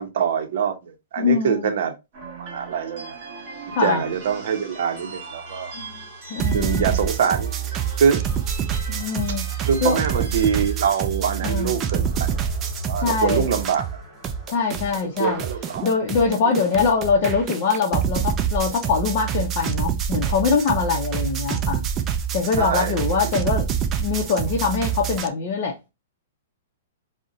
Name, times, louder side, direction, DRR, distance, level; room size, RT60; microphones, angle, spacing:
voice 1, 0.0-1.9 2.4-3.1 3.8-5.8 6.5-7.5 8.0-8.2 9.6-12.4 12.9-13.8 15.2-15.9 22.6-23.3, right 7 dB, 60° right, 0.7 m, -24 dB
voice 2, 1.2-1.7 3.7-4.0 5.7-7.0 8.9-10.0 11.4-11.7 13.0-13.5 14.5-15.4 15.8-21.9 22.3-23.7 24.0-25.8, left 5 dB, 35° left, 0.6 m, -23 dB
sound 1, 2.1-18.3, right 2 dB, 40° right, 1.5 m, -40 dB
sound 2, 6.4-14.0 14.2-25.3, right 8 dB, 20° right, 0.3 m, -26 dB
2.5 x 2.1 x 3.7 m
hypercardioid pair, 160°, 0 cm